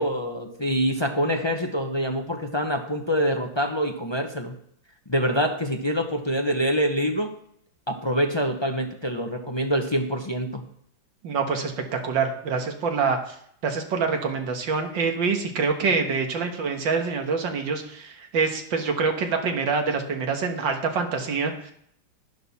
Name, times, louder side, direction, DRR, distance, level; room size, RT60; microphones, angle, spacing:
voice 1, 0.0-4.5 5.1-7.3 7.9-10.6 15.9-16.1, equal, 25° left, 3 dB, 0.5 m, -25 dB
voice 2, 11.2-13.3 13.6-21.7, right 5 dB, 75° right, 5 dB, 2.1 m, -26 dB
12.0 x 10.5 x 4.2 m, 0.68 s
omnidirectional pair, 2.1 m